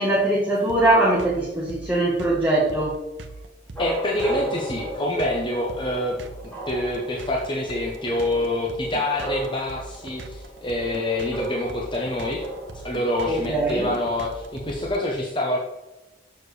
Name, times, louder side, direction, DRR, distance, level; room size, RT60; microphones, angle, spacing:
voice 1, 0.0-3.0 13.3-13.9, right 1 dB, 10° right, -4 dB, 1.2 m, -21 dB
sound 1, 0.7-15.0, right 3 dB, 75° right, 0.8 m, -40 dB
sound 2, 3.7-14.8, right 2 dB, 10° left, 1.8 m, -36 dB
voice 2, 3.8-6.2 6.4-12.5 12.8-15.6, left 1 dB, 25° left, -2 dB, 0.8 m, -26 dB
7.1 x 6.6 x 3.2 m, 1.0 s
head